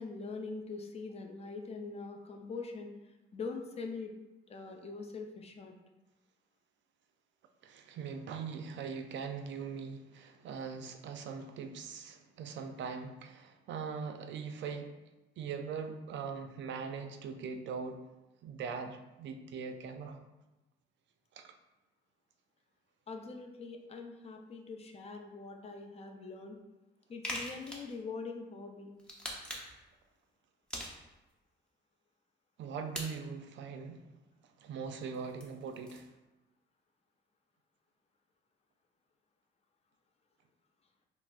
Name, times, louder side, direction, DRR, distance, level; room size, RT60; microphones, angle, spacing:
voice 1, 0.0-2.9 3.3-4.1 4.5-5.7 23.1-26.6 27.1-28.9, left 4 dB, 30° left, 3 dB, 0.5 m, -43 dB
voice 2, 7.6-15.0 15.4-18.0 18.4-20.2 21.3-21.5 32.6-34.1 34.4-36.1, right 5 dB, 65° right, 6 dB, 0.4 m, -41 dB
sound 1, 27.2-28.0 29.0-29.8 30.7-31.3 32.9-33.1 35.0-36.1, equal, 5° left, 0.8 m, -42 dB
5.6 x 2.0 x 2.4 m, 1.0 s
cardioid pair, 90°, 20 cm